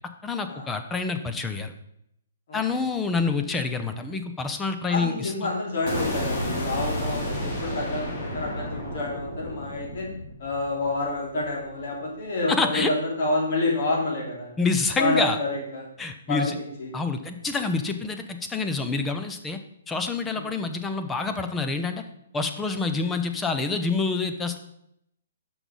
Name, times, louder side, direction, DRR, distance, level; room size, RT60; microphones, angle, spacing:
voice 1, 0.2-1.7 2.5-5.3 12.5-12.9 14.6-15.4 16.0-16.6 16.9-19.6 19.9-22.0 22.3-24.6, left 4 dB, 10° left, 7 dB, 0.6 m, -27 dB
voice 2, 4.8-10.1 10.4-14.5 15.0-15.8 16.3-16.4 16.8-16.9 20.3-20.6, left 2 dB, 55° left, -2 dB, 3.3 m, -28 dB
sound 1, 5.9-11.9, left 1 dB, 40° left, 3.4 m, -32 dB
6.2 x 5.9 x 5.3 m, 0.76 s
hypercardioid pair, 150°, 0 cm